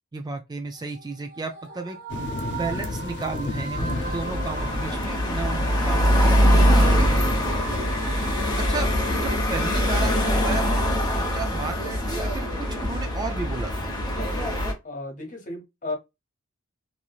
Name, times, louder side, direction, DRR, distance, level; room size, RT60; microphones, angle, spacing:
voice 1, 0.1-2.0 2.5-7.5 8.6-13.9, right 3 dB, 20° right, 0.4 m, -34 dB
sound 1, 0.8-5.7 6.1-10.9, right 2 dB, 50° right, 1.2 m, -39 dB
sound 2, 2.1-10.4, left 2 dB, 60° left, 0.6 m, -36 dB
sound 3, 3.8-14.7, equal, 20° left, 0.9 m, -23 dB
voice 2, 8.0-8.3 14.8-15.9, left 2 dB, 40° left, 1.3 m, -34 dB
3.1 x 2.7 x 2.2 m
head